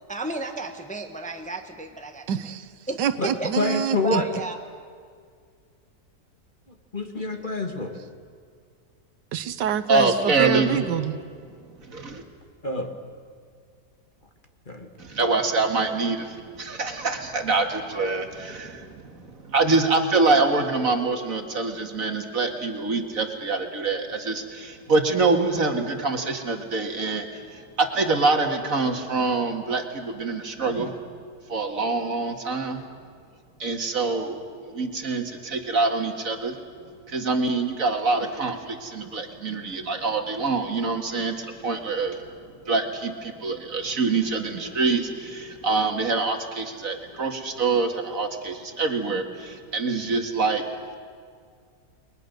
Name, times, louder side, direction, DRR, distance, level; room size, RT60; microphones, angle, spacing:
voice 1, 0.1-2.3 2.9-3.5 4.0-4.6, right 3 dB, 5° left, 5 dB, 1.2 m, -32 dB
voice 2, 2.3-2.7 3.0-4.2 9.3-11.2, right 8 dB, 85° right, 13 dB, 1.6 m, -26 dB
voice 3, 3.6-4.3 6.9-7.9 12.6-12.9 14.7-14.9, left 3 dB, 30° left, 4 dB, 1.8 m, -27 dB
voice 4, 9.9-10.8 11.8-12.2 15.0-30.9 31.5-32.8 33.6-34.4 34.7-36.6 37.1-42.2 42.6-50.7, right 3 dB, 50° right, 5 dB, 2.2 m, -25 dB
29.5 x 21.5 x 6.6 m, 2.1 s
omnidirectional pair, 1.8 m